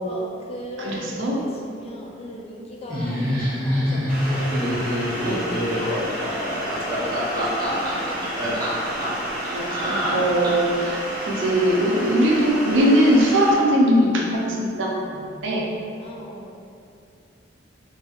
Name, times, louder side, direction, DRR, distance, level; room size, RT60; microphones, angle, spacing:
voice 1, 0.0-4.6 5.0-9.3 10.3-11.0 16.0-16.6, left 1 dB, 30° left, -2 dB, 0.3 m, -39 dB
voice 2, 0.8-1.4 5.2-5.5 9.5-15.7, equal, 80° right, -2 dB, 0.5 m, -21 dB
Laughter, 2.9-10.8, equal, 20° right, 0.7 m, -25 dB
sound 1, 4.1-13.5, equal, 5° right, 1.1 m, -31 dB
2.7 x 2.7 x 2.4 m, 2.5 s
head